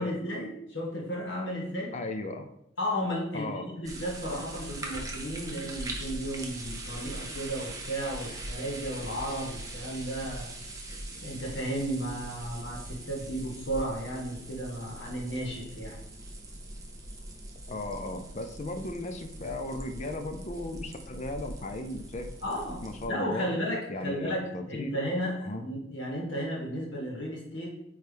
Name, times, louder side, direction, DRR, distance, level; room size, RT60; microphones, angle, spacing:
voice 1, 0.0-1.9 2.8-10.5 11.2-16.0 22.4-27.7, equal, 75° left, -2 dB, 1.8 m, -34 dB
voice 2, 1.9-2.5 3.3-3.7 10.9-11.2 17.7-22.3 22.8-23.5 23.9-25.0 25.4-25.6, left 2 dB, 40° left, 6 dB, 0.6 m, -36 dB
sound 1, 3.8-23.1, right 1 dB, 20° right, 0.9 m, -41 dB
8.9 x 3.2 x 3.4 m, 0.79 s
head